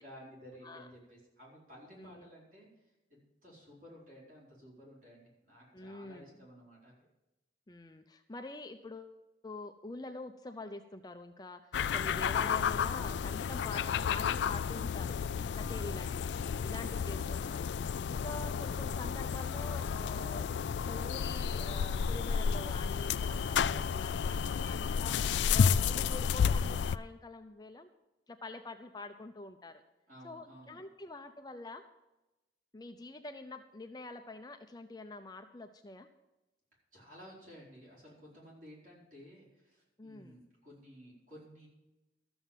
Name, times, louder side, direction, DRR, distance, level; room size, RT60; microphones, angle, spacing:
voice 1, 0.0-2.8 3.1-7.1 30.1-30.8 36.9-41.7, equal, 45° right, -4 dB, 4.8 m, -54 dB
voice 2, 2.0-2.3 5.7-6.3 7.7-9.2 9.4-16.3 16.6-17.6 18.1-20.5 20.8-25.2 25.5-27.9 28.3-29.8 30.2-31.8 32.7-36.1 40.0-40.4, left 2 dB, 20° left, 6 dB, 0.5 m, -46 dB
sound 1, 11.7-27.0, left 7 dB, 75° left, 0.3 m, -32 dB
13.5 x 7.1 x 7.3 m, 0.99 s
head